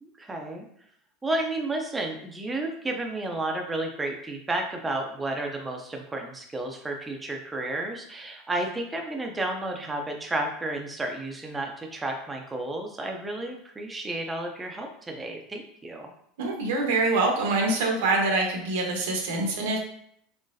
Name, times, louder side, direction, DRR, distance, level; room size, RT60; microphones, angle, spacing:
voice 1, 0.0-0.7 1.2-16.1, right 2 dB, 10° right, 2 dB, 0.4 m, -32 dB
voice 2, 16.4-19.8, right 3 dB, 90° right, 1 dB, 0.9 m, -25 dB
3.9 x 3.1 x 2.5 m, 0.69 s
supercardioid pair, 165°, 0 cm